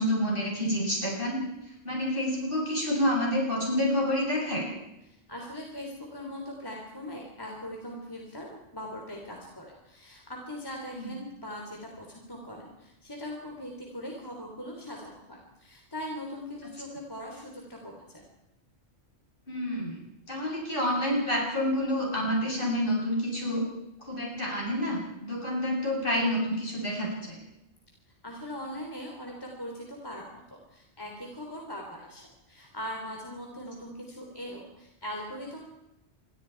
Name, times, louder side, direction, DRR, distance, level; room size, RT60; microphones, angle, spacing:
voice 1, 0.0-1.4 1.8-4.7 11.0-11.1 19.5-20.0 20.3-23.6 24.0-27.4, equal, 50° left, -3 dB, 8.4 m, -28 dB
voice 2, 5.1-18.2 28.2-35.7, equal, 20° left, 0 dB, 3.6 m, -40 dB
28.5 x 23.0 x 4.7 m, 0.88 s
omnidirectional pair, 1.2 m